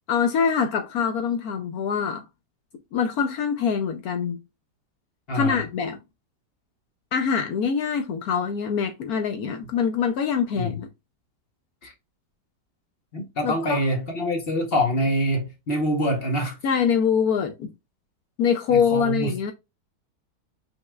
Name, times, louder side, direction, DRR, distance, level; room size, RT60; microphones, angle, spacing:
voice 1, 0.1-2.3 2.9-4.4 5.3-6.0 7.1-10.9 13.4-13.8 16.6-17.7 18.4-19.5, left 6 dB, 70° left, 1.0 m, -24 dB
voice 2, 5.3-5.6 10.5-10.8 11.8-11.9 13.1-16.6 18.7-19.3, equal, 40° left, 1.0 m, -25 dB
5.4 x 3.8 x 2.3 m
omnidirectional pair, 1.8 m